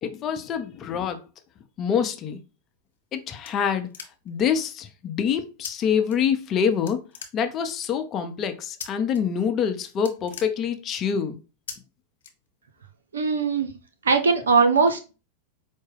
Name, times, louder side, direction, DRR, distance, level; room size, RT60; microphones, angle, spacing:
voice 1, 0.0-1.2 1.8-2.4 3.1-3.9 4.3-7.0 7.3-11.4, left 7 dB, 35° left, 0.6 m, -26 dB
sound 1, 2.8-4.5 5.6-5.7 6.1-6.6 6.9-7.8 8.8-9.2 9.5-9.7 9.9-11.1 11.7-11.8 12.2-12.9, left 6 dB, 80° left, 0.7 m, -40 dB
voice 2, 13.1-13.7 14.0-15.1, right 4 dB, 85° right, 0.6 m, -20 dB
4.6 x 2.1 x 3.3 m
hypercardioid pair, 100°, 0 cm